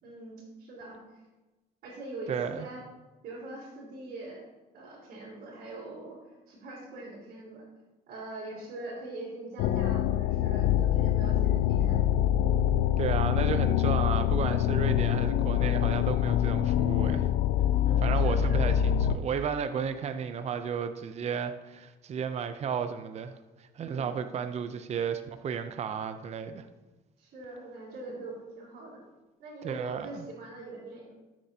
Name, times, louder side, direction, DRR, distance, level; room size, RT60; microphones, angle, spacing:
voice 1, 0.0-1.2 1.8-2.8 3.2-4.4 4.7-7.7 8.1-12.0 17.8-18.6 23.8-24.2 27.2-29.0 29.4-31.2, right 2 dB, 65° right, -9 dB, 3.4 m, -43 dB
voice 2, 2.3-2.7 13.0-17.3 18.0-26.7 29.6-30.2, right 7 dB, 40° right, 9 dB, 0.6 m, -33 dB
sound 1, 9.6-19.2, left 10 dB, 90° left, 0.4 m, -25 dB
12.5 x 7.4 x 2.8 m, 1.1 s
cardioid pair, 110°, 17 cm